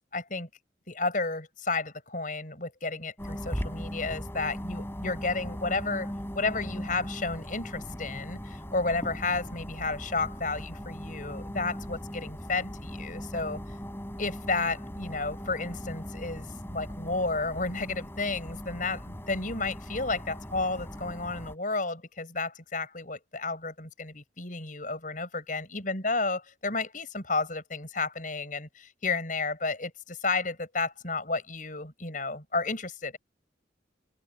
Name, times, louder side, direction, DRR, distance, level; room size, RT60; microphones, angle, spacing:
voice 1, 0.1-0.5 0.9-13.6 14.2-33.2, left 3 dB, 45° left, 7.0 m, -32 dB
sound 1, 3.2-21.6, equal, 10° left, 3.9 m, -39 dB
head